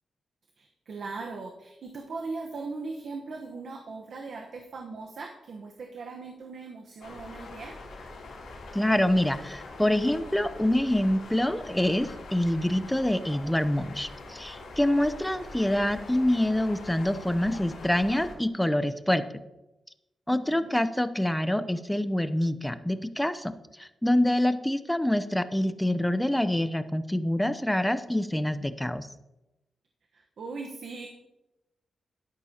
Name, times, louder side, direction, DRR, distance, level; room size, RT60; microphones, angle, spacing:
voice 1, 0.6-7.8 20.3-20.7 30.1-31.1, right 4 dB, 65° right, 2 dB, 1.1 m, -39 dB
sound 1, 7.0-18.3, left 2 dB, 90° left, 3.2 m, -44 dB
voice 2, 8.7-19.2 20.3-29.1, left 1 dB, 5° left, 11 dB, 0.7 m, -26 dB
12.5 x 10.5 x 2.9 m, 0.96 s
cardioid pair, 80°, 0 cm